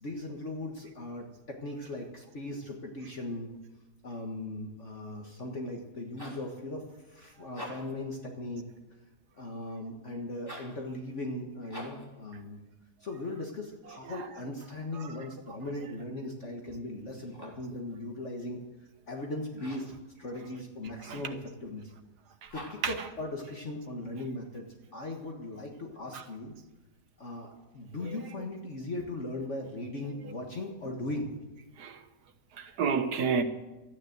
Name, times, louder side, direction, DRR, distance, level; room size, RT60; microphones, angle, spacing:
voice 1, 0.0-3.5 4.0-8.6 9.3-12.6 13.0-18.6 19.1-19.9 20.2-21.9 22.5-24.7 24.9-26.6 27.2-31.3, left 2 dB, 45° left, 1.8 m, -38 dB
sound 1, 5.9-6.5 7.4-8.0 10.4-10.8 11.7-12.1 17.1-17.7 19.5-20.0 22.5-23.0, equal, 15° left, 3.3 m, -45 dB
voice 2, 32.5-33.4, right 6 dB, 75° right, 1.7 m, -31 dB
13.5 x 9.8 x 8.0 m
omnidirectional pair, 1.8 m